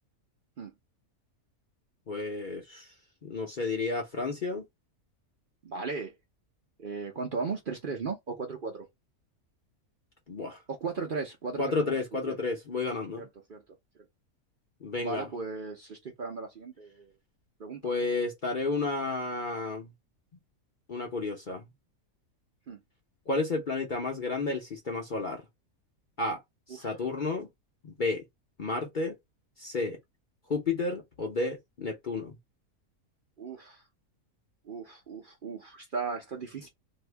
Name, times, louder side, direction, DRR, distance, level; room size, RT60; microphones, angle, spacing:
voice 1, 2.1-2.9 3.2-4.7 10.3-10.6 11.6-13.2 14.8-15.3 17.8-19.9 20.9-21.7 23.3-25.4 26.2-26.4 26.7-27.5 27.8-28.2 28.6-29.2 29.6-30.0 30.5-32.4, left 3 dB, 45° left, 0.7 m, -31 dB
voice 2, 5.6-6.1 6.8-8.9 10.7-12.0 12.3-12.4 13.2-13.6 15.0-17.1 17.6-17.9 22.7-22.8 26.8-26.9 33.4-33.8 34.7-36.7, right 4 dB, 45° right, 0.7 m, -36 dB
2.7 x 2.6 x 3.3 m
omnidirectional pair, 1.5 m